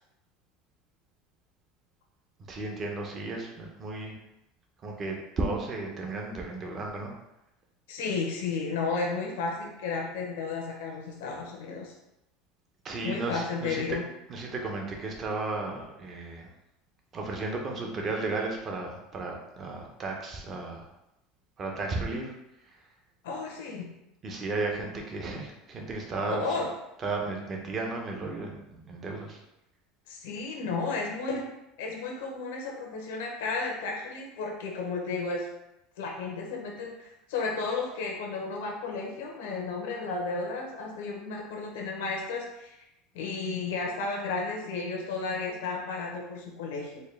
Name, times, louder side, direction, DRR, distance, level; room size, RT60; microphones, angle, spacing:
voice 1, 2.5-4.2 4.8-7.1 12.8-14.0 14.3-16.5 17.1-20.9 21.6-22.3 24.2-26.6 27.0-29.4, right 3 dB, 30° right, 1 dB, 0.7 m, -34 dB
voice 2, 7.9-11.9 13.0-14.0 23.2-23.9 26.3-26.7 30.1-31.4 31.8-35.5 36.0-42.8 43.1-47.0, left 4 dB, 85° left, 0 dB, 0.8 m, -33 dB
4.3 x 2.2 x 3.3 m, 0.89 s
supercardioid pair, 130°, 0 cm